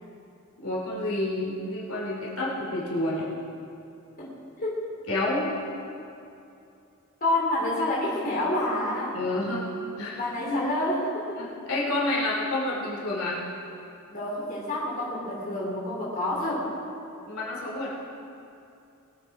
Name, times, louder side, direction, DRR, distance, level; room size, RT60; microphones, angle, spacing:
voice 1, 0.6-3.3 5.1-5.5 9.1-9.7 10.0-10.6 11.4-13.4 17.3-17.9, left 2 dB, 75° left, -5 dB, 3.4 m, -29 dB
voice 2, 7.2-9.2 10.1-11.4 14.1-16.7, left 1 dB, 40° left, -6 dB, 3.6 m, -28 dB
22.0 x 8.9 x 5.0 m, 2.7 s
head